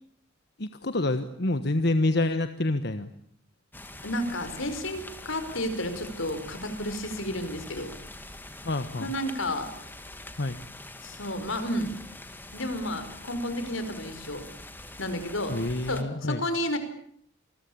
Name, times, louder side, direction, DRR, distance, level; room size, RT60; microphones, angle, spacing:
voice 1, 0.6-3.1 8.6-9.1 10.4-10.6 15.5-16.4, left 2 dB, 55° left, 9 dB, 1.4 m, -27 dB
sound 1, 3.7-16.0, left 2 dB, 10° left, 2.2 m, -44 dB
voice 2, 4.0-7.9 8.9-9.7 11.0-11.9 12.5-14.4 15.0-15.6 15.9-16.8, left 1 dB, 80° left, 9 dB, 5.0 m, -31 dB
28.5 x 22.0 x 8.7 m, 0.67 s
head